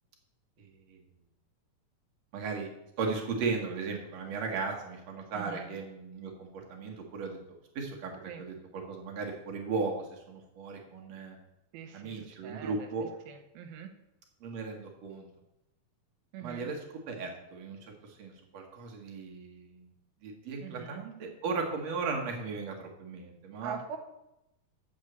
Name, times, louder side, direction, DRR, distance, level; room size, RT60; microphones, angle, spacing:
voice 1, 0.6-1.0 2.3-2.7 3.0-7.4 7.8-11.4 11.9-13.1 14.4-15.3 16.4-19.9 20.2-23.8, right 4 dB, 55° right, 1 dB, 2.2 m, -36 dB
voice 2, 5.4-5.7 8.3-8.4 11.7-12.9 13.3-13.9 16.3-16.7 20.6-21.0 23.6-24.0, right 7 dB, 80° right, 6 dB, 2.8 m, -43 dB
7.3 x 6.1 x 7.8 m, 0.88 s
omnidirectional pair, 4.3 m